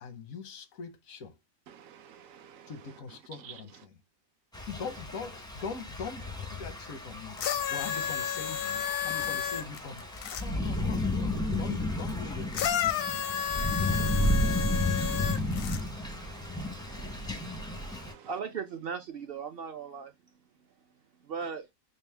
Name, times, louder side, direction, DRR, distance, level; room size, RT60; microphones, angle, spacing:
voice 1, 0.0-1.3 2.7-3.9 4.7-7.4 7.7-13.0, left 5 dB, 90° left, 1.3 m, -42 dB
voice 2, 1.7-2.9 3.4-3.6 13.8-18.3, right 8 dB, 75° right, 1.0 m, -52 dB
Thunder / Rain, 4.5-18.1, left 1 dB, 5° left, 0.4 m, -33 dB
sound 1, 7.4-10.4 12.5-15.8 16.7-16.8, left 8 dB, 65° left, 0.6 m, -32 dB
voice 3, 18.2-20.1 21.2-21.7, right 6 dB, 60° right, 0.6 m, -37 dB
5.3 x 2.1 x 3.3 m
omnidirectional pair, 1.4 m